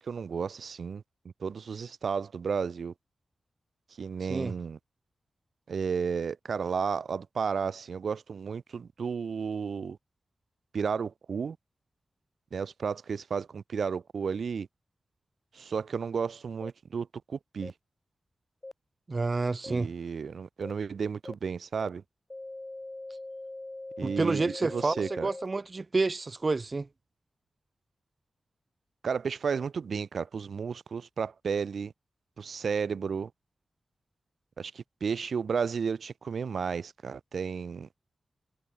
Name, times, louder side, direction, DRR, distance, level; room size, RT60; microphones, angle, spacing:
voice 1, 0.0-2.9 4.0-4.8 5.7-10.0 10.7-11.6 12.5-14.7 15.5-17.7 19.7-22.0 24.0-25.3 29.0-31.9 32.4-33.3 34.6-37.9, right 6 dB, 80° right, 0.4 m, -33 dB
sound 1, 16.6-16.7 17.6-17.7 18.6-18.7 19.6-19.7 20.6-20.7 21.3-21.4 21.8-21.9 22.3-25.5, left 2 dB, 30° left, 0.5 m, -41 dB
voice 2, 19.1-19.9 24.0-26.9, right 3 dB, 45° right, 1.0 m, -29 dB
cardioid pair, 50°, 0 cm